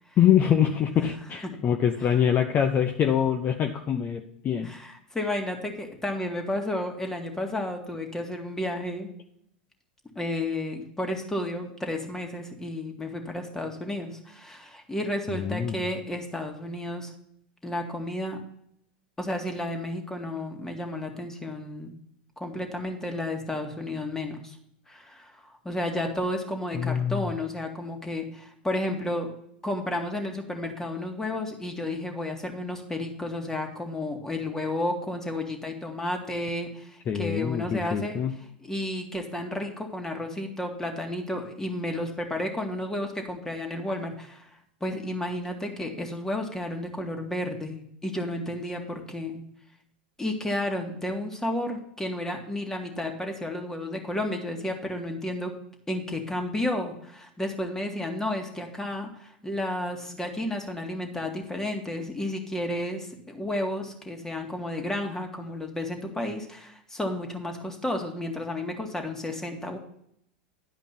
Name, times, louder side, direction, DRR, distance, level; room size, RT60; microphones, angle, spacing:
voice 1, 0.2-4.7 15.3-15.8 26.7-27.3 37.1-38.3, left 9 dB, 35° left, 5 dB, 0.9 m, -24 dB
voice 2, 4.6-9.1 10.2-17.1 17.6-18.4 19.2-21.9 22.4-24.6 24.9-29.3 29.6-38.2 38.6-44.5 44.8-49.4 50.2-55.5 55.9-69.8, left 1 dB, 10° left, 3 dB, 2.1 m, -32 dB
11.0 x 5.2 x 5.7 m, 0.71 s
hypercardioid pair, 100°, 5 cm